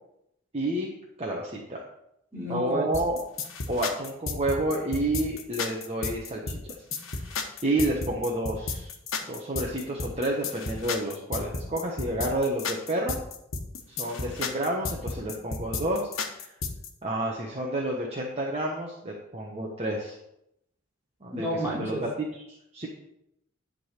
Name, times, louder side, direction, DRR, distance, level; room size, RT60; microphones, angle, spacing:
voice 1, 0.5-0.9 1.2-1.8 2.5-3.2 3.7-6.6 7.1-8.9 9.3-13.1 13.9-16.5 17.0-20.2 21.2-22.9, right 1 dB, 30° right, -2 dB, 1.2 m, -30 dB
voice 2, 2.3-2.9 21.3-22.0, right 1 dB, 10° right, -4 dB, 3.2 m, -30 dB
sound 1, 2.9-16.9, left 4 dB, 90° left, 1.1 m, -33 dB
11.0 x 3.9 x 6.6 m, 0.80 s
head